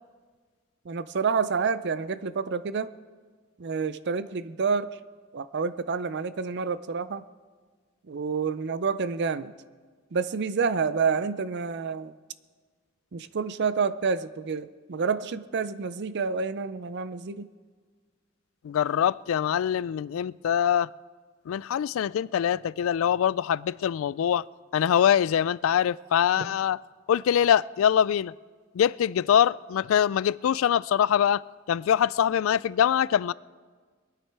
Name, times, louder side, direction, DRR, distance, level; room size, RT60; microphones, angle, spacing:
voice 1, 0.9-2.9 3.6-4.9 5.3-7.2 8.1-9.5 10.1-12.1 13.1-17.5 26.4-26.6, right 5 dB, 60° right, 0.5 m, -28 dB
voice 2, 18.6-20.9 21.5-24.4 24.7-26.8 27.1-28.3 28.7-31.4 31.7-33.3, left 9 dB, 80° left, 0.3 m, -23 dB
23.0 x 9.3 x 4.7 m
head